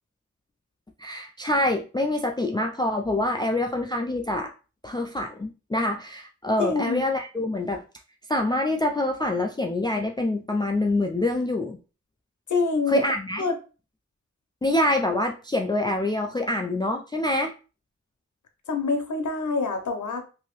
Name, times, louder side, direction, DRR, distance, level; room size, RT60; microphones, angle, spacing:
voice 1, 1.0-4.5 4.8-7.8 8.3-11.8 12.9-13.4 14.6-17.5, left 1 dB, 15° left, 2 dB, 0.3 m, -25 dB
voice 2, 6.6-7.0 12.5-13.0 13.4-13.6 18.7-20.2, left 4 dB, 85° left, 5 dB, 0.7 m, -26 dB
2.8 x 2.7 x 3.0 m, 0.34 s
wide cardioid pair, 75°, 29 cm